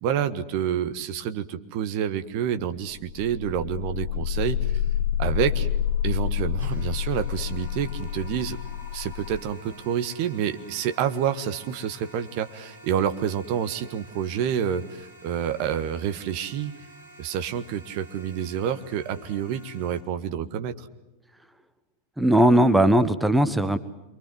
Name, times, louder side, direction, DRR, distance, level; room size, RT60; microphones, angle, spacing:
voice 1, 0.0-4.8 5.2-5.7 6.0-8.6 8.9-16.7 17.2-20.9, right 9 dB, 45° right, 10 dB, 1.6 m, -28 dB
sound 1, 2.9-12.8, left 10 dB, 35° left, 1.9 m, -30 dB
sound 2, 6.6-20.0, right 1 dB, 90° right, 7.0 m, -50 dB
voice 2, 22.2-23.8, right 1 dB, 5° right, 12 dB, 1.3 m, -18 dB
28.5 x 24.0 x 7.9 m, 0.96 s
figure-of-eight pair, 90°, 0 cm